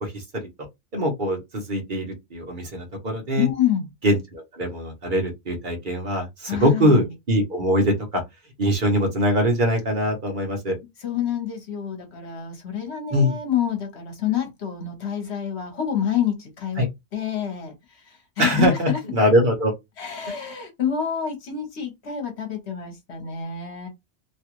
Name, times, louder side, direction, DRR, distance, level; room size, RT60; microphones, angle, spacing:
voice 1, 0.0-0.4 0.9-3.5 4.0-8.2 8.6-10.7 13.1-13.4 16.8-16.9 18.4-19.7, equal, 50° right, 1.1 m, -22 dB
voice 2, 3.4-3.9 6.5-7.1 11.0-16.9 17.1-19.0 20.0-23.9, left 9 dB, 70° left, 1.3 m, -27 dB
3.1 x 2.4 x 3.0 m
omnidirectional pair, 1.2 m